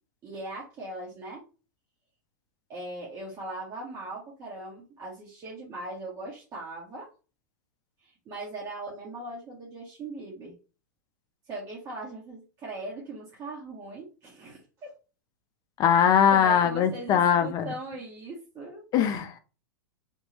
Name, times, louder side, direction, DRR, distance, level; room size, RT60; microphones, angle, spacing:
voice 1, 0.2-1.4 2.7-7.1 8.2-10.5 11.5-14.9 16.3-19.2, right 2 dB, 30° right, 1.6 m, -39 dB
voice 2, 15.8-17.7 18.9-19.4, left 8 dB, 35° left, 0.7 m, -21 dB
3.6 x 3.0 x 3.0 m
hypercardioid pair, 105°, 11 cm